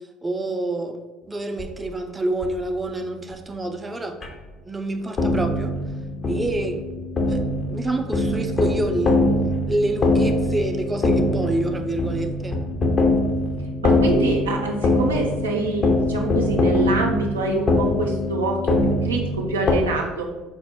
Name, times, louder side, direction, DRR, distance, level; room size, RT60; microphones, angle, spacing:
voice 1, 0.2-1.0 1.3-4.2 4.6-5.7 6.2-6.8 7.3-7.4 7.7-9.2 9.7-12.6, right 2 dB, 20° right, 5 dB, 0.4 m, -27 dB
sound 1, 1.6-1.7 2.4-2.5 3.3-3.4 4.2-4.4 5.2-19.7, left 2 dB, 35° left, 0.6 m, -23 dB
voice 2, 13.8-20.3, right 2 dB, 90° right, 0 dB, 0.4 m, -25 dB
4.4 x 2.0 x 3.4 m, 1.2 s
hypercardioid pair, 65°, 0 cm